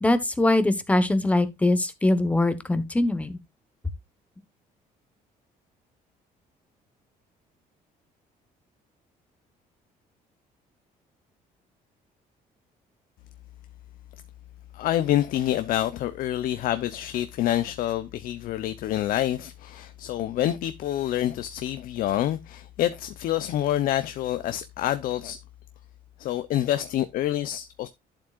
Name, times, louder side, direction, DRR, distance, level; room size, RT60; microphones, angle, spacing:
voice 1, 0.0-3.4, left 2 dB, 10° left, 1.1 m, -22 dB
voice 2, 14.7-25.4 26.2-27.9, left 12 dB, 65° left, 0.7 m, -27 dB
11.5 x 7.5 x 2.4 m
cardioid pair, 150°, 16 cm